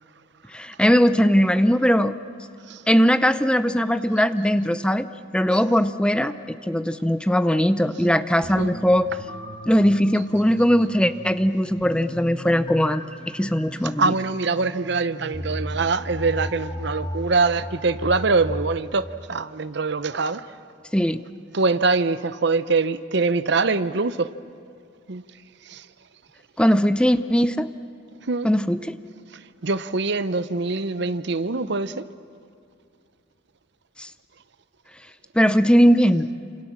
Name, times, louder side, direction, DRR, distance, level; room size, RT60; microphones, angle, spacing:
voice 1, 0.5-2.1 2.9-5.1 5.3-9.1 9.7-13.0 13.3-14.1 20.9-21.2 26.6-27.7 28.4-29.0 34.0-34.1 35.3-36.3, equal, 5° left, 12 dB, 0.6 m, -19 dB
sound 1, 8.4-18.8, equal, 25° left, 2.8 m, -36 dB
voice 2, 14.0-20.5 21.5-24.3 25.1-25.2 25.7-25.8 28.3-28.5 29.6-32.0, right 3 dB, 60° right, 14 dB, 0.8 m, -23 dB
28.5 x 27.5 x 7.4 m, 2.4 s
head